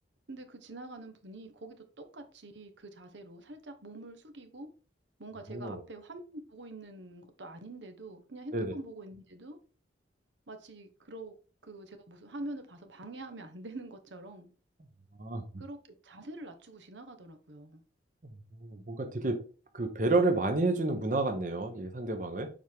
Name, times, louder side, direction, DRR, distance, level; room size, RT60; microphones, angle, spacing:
voice 1, 0.3-4.7 5.2-9.6 10.5-11.3 11.6-14.5 15.6-17.8, right 2 dB, 80° right, 1.2 m, -45 dB
voice 2, 5.5-5.8 8.5-8.7 15.2-15.4 18.6-19.4 19.7-22.5, right 2 dB, 45° right, 0.9 m, -30 dB
7.2 x 4.6 x 3.6 m
head